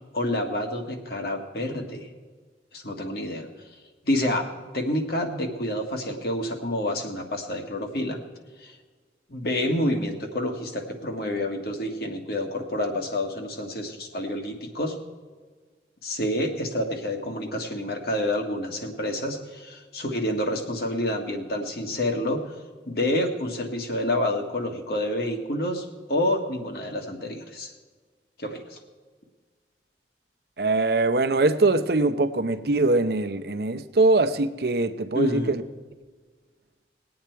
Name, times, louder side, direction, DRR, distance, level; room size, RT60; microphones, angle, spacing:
voice 1, 0.1-2.1 2.7-3.5 4.0-4.5 4.7-8.2 8.6-8.8 9.3-15.0 16.0-22.4 22.9-27.7 28.4-28.8 35.1-35.5, left 1 dB, 55° left, 3 dB, 1.6 m, -28 dB
voice 2, 30.6-35.6, right 2 dB, 60° right, 10 dB, 0.7 m, -22 dB
20.5 x 8.7 x 4.6 m, 1.5 s
head